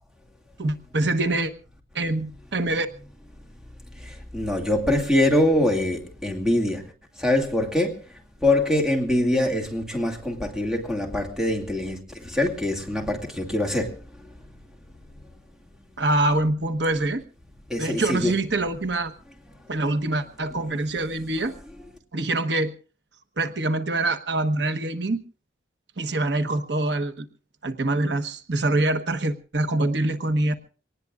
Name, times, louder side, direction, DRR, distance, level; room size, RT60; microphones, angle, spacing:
voice 1, 0.6-1.5 1.9-2.9 16.0-17.2 17.8-19.1 19.7-21.5 22.1-22.7 23.4-25.2 26.0-27.3 27.6-30.5, right 2 dB, 75° right, 1.2 m, -25 dB
voice 2, 4.0-14.3 17.7-18.3, left 1 dB, 5° right, 2.3 m, -24 dB
24.5 x 19.0 x 2.5 m
head